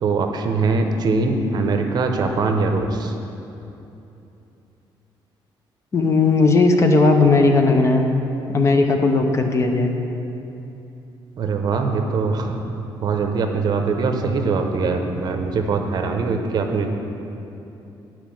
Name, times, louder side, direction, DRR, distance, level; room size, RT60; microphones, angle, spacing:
voice 1, 0.0-3.1 11.4-12.6 13.0-16.9, right 4 dB, 50° right, 4 dB, 0.7 m, -22 dB
voice 2, 5.9-8.1 8.5-9.9, left 3 dB, 30° left, 4 dB, 0.7 m, -16 dB
9.0 x 4.7 x 7.5 m, 2.9 s
cardioid pair, 140°, 9 cm